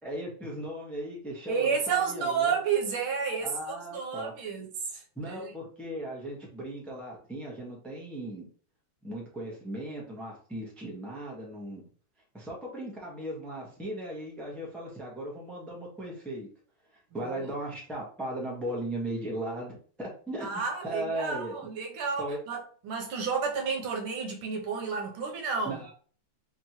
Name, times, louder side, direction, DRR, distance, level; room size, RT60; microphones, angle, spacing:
voice 1, 0.0-2.6 3.4-4.3 5.1-8.5 9.0-11.9 12.3-16.5 17.1-20.5 20.8-21.6 22.2-22.4 25.6-25.9, right 1 dB, ahead, 0.7 m, -37 dB
voice 2, 1.5-4.7 4.9-5.5 17.2-17.3 20.4-25.8, right 6 dB, 85° right, 1.8 m, -31 dB
4.2 x 3.0 x 3.0 m
omnidirectional pair, 2.3 m